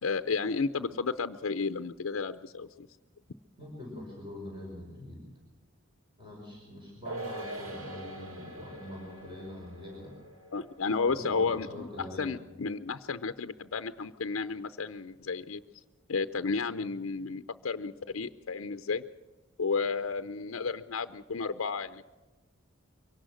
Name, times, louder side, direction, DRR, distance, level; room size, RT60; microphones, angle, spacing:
voice 1, 0.0-2.9 10.5-11.7 12.2-15.6 16.1-19.0 19.6-22.1, left 4 dB, 75° left, 9 dB, 0.6 m, -32 dB
voice 2, 3.6-5.2 6.2-10.1 11.1-12.3, left 1 dB, 25° right, -2 dB, 5.2 m, -43 dB
sound 1, 7.0-13.7 14.0-14.1, right 1 dB, 70° right, 2.2 m, -45 dB
23.5 x 18.0 x 6.3 m, 1.2 s
head